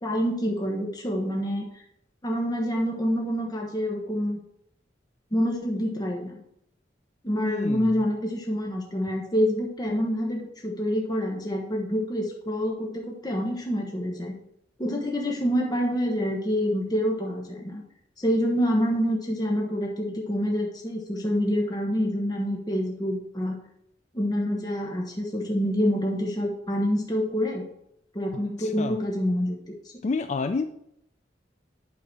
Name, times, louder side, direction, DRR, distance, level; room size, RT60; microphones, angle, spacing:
voice 1, 0.0-1.8 2.2-4.4 5.3-6.4 7.2-14.3 14.8-17.8 18.2-23.6 24.1-27.6 28.1-29.9, equal, 20° left, 0 dB, 1.1 m, -27 dB
voice 2, 7.4-7.9 28.6-28.9 30.0-30.6, left 4 dB, 40° left, 9 dB, 0.3 m, -28 dB
8.8 x 4.0 x 6.1 m, 0.75 s
head